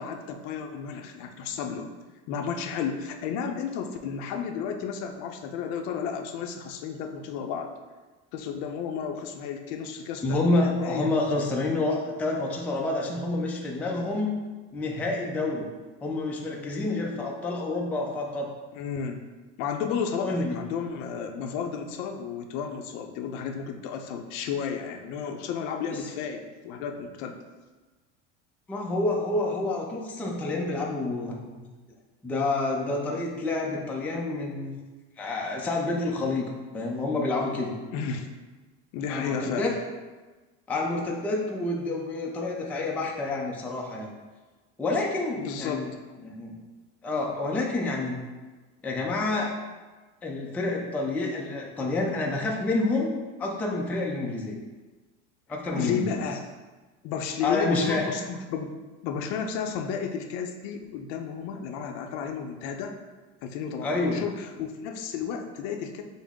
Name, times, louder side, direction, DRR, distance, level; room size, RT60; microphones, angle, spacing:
voice 1, 0.0-1.9 2.3-7.7 8.3-11.2 13.9-14.0 18.7-19.2 19.6-27.4 37.9-38.3 38.9-39.7 45.4-45.8 55.8-56.5 57.0-58.7 59.0-63.0 63.4-66.0, left 6 dB, 60° left, 5 dB, 0.6 m, -32 dB
voice 2, 10.2-14.4 14.7-15.7 16.0-18.5 20.2-20.6 25.9-26.0 28.7-31.3 32.2-34.7 35.2-37.8 39.1-39.7 40.7-44.1 44.8-45.9 46.2-46.5 47.0-48.2 48.8-49.6 50.2-53.1 53.4-54.6 55.5-56.2 57.4-58.1 63.8-64.2, left 2 dB, 5° left, -1 dB, 0.3 m, -28 dB
5.4 x 2.0 x 3.6 m, 1.2 s
supercardioid pair, 125°, 34 cm